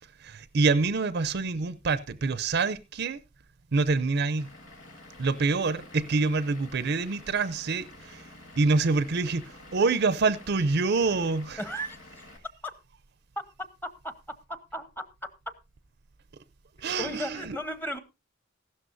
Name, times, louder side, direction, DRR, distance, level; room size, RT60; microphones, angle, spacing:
voice 1, 0.2-3.2 3.7-4.5 5.2-8.3 8.6-11.6 16.8-17.6, right 4 dB, 55° right, 0.6 m, -26 dB
Vehicle / Engine, 4.4-12.4, left 2 dB, 90° left, 2.6 m, -50 dB
voice 2, 11.6-12.0 14.0-14.1 14.5-15.1 16.8-18.0, equal, 10° left, 1.0 m, -35 dB
15.5 x 12.5 x 2.6 m
head